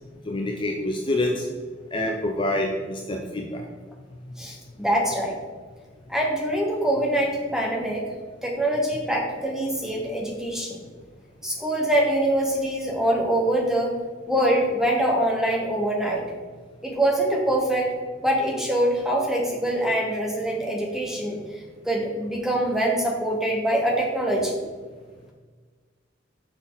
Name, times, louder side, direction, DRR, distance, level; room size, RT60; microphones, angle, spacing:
voice 1, 0.3-1.5 1.9-3.6, left 1 dB, 25° left, 1 dB, 0.6 m, -26 dB
voice 2, 4.4-5.4 6.1-8.0 8.4-10.8 11.4-13.9 14.3-16.2 16.8-17.9 18.2-21.4 21.8-24.6, right 1 dB, 5° right, -1 dB, 1.2 m, -24 dB
6.2 x 5.3 x 3.9 m, 1.4 s
head